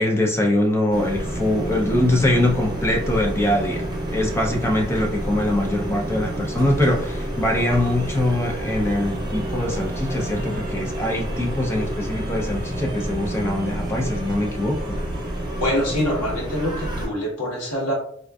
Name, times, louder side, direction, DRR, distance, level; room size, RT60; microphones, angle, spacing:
voice 1, 0.0-3.9 4.1-14.8, left 1 dB, 10° left, 1 dB, 0.5 m, -23 dB
sound 1, 0.9-17.1, right 1 dB, 20° right, 0.9 m, -29 dB
voice 2, 15.6-17.9, equal, 85° left, -2 dB, 1.2 m, -24 dB
3.7 x 2.5 x 2.3 m, 0.63 s
head